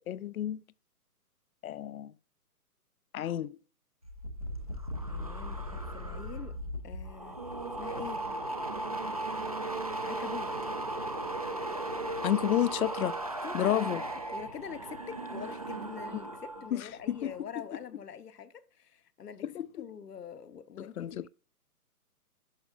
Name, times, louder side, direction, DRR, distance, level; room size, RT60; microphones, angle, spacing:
voice 1, 0.1-0.6 1.6-2.1 3.1-3.6 12.2-13.1 13.5-14.0 16.7-17.3 19.4-19.9 20.8-21.3, left 11 dB, 65° left, 0.5 m, -31 dB
sound 1, 4.0-16.7 17.0-17.4, right 2 dB, 25° right, 0.4 m, -37 dB
sound 2, 4.5-10.2 10.4-10.7, left 4 dB, 15° left, 0.6 m, -49 dB
voice 2, 5.1-6.6 6.8-8.3 10.0-10.5 13.4-14.0 14.3-19.5 19.8-21.3, left 7 dB, 85° left, 1.0 m, -45 dB
11.5 x 5.1 x 2.4 m
hypercardioid pair, 150°, 46 cm